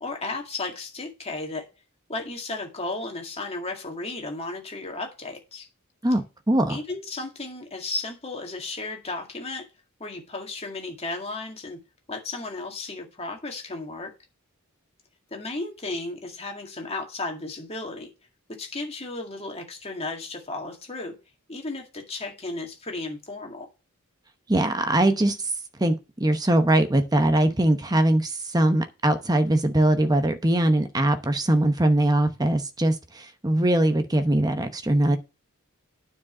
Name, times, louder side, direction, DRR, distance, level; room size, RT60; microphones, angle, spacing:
voice 1, 0.0-1.7 2.1-5.7 6.7-9.7 10.0-11.8 12.1-14.1 15.3-18.1 18.6-21.1 21.5-23.7, left 2 dB, 30° left, 2.0 m, -34 dB
voice 2, 6.0-6.8 24.5-25.5 25.8-35.2, right 1 dB, 15° right, 0.9 m, -22 dB
9.3 x 4.9 x 6.1 m
head